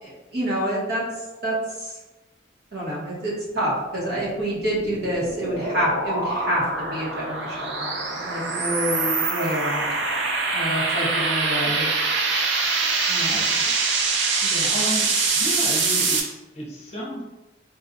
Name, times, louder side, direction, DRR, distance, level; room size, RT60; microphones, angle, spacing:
voice 1, 0.0-1.0 1.4-2.0 2.7-6.7 6.9-10.0 10.5-11.9 13.1-13.4 14.4-14.7, equal, 55° right, -6 dB, 1.1 m, -27 dB
sound 1, 4.3-16.2, right 4 dB, 90° right, 0.5 m, -24 dB
voice 2, 13.3-13.7 14.7-15.1 15.3-17.2, equal, 35° left, -4 dB, 0.7 m, -33 dB
4.1 x 2.3 x 2.6 m, 1.1 s
head